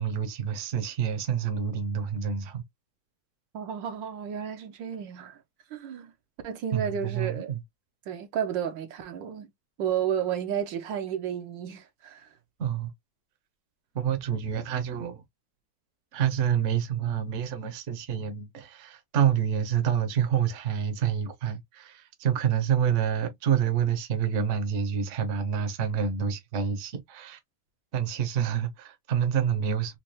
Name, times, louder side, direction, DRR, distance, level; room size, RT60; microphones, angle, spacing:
voice 1, 0.0-2.6 6.7-7.6 12.6-12.9 13.9-15.2 16.1-27.4 27.9-30.0, right 8 dB, 50° right, 0.9 m, -28 dB
voice 2, 3.5-5.4 5.7-6.1 6.4-7.5 8.1-9.5 9.8-12.3, right 9 dB, 75° right, 1.3 m, -32 dB
4.3 x 2.3 x 3.0 m
omnidirectional pair, 2.1 m